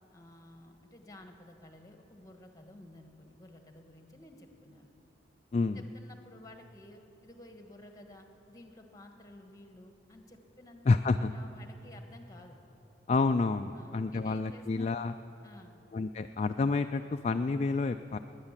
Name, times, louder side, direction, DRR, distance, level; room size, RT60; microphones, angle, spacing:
voice 1, 0.1-4.9 5.7-12.6 13.7-15.0 15.4-15.8, left 1 dB, 20° left, 5 dB, 1.3 m, -53 dB
voice 2, 5.5-5.8 10.9-11.3 13.1-15.2 15.9-18.2, left 3 dB, 35° left, 8 dB, 0.3 m, -29 dB
20.0 x 9.8 x 7.3 m, 3.0 s
head